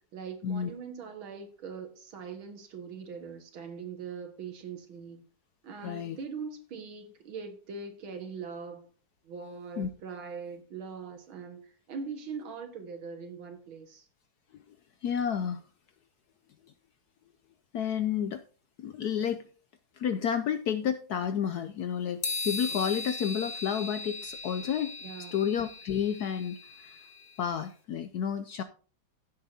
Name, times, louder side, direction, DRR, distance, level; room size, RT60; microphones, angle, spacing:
voice 1, 0.1-5.2 5.6-8.9 9.3-11.6 11.9-14.1 25.0-25.4, right 5 dB, 85° right, 2.4 m, -41 dB
voice 2, 5.8-6.2 9.8-9.9 15.0-15.6 17.7-18.4 18.8-19.4 20.0-24.9 25.3-27.0 27.4-28.6, left 8 dB, 70° left, 0.9 m, -31 dB
sound 1, 22.2-27.5, left 3 dB, 30° left, 1.1 m, -38 dB
15.5 x 7.7 x 2.8 m
omnidirectional pair, 2.2 m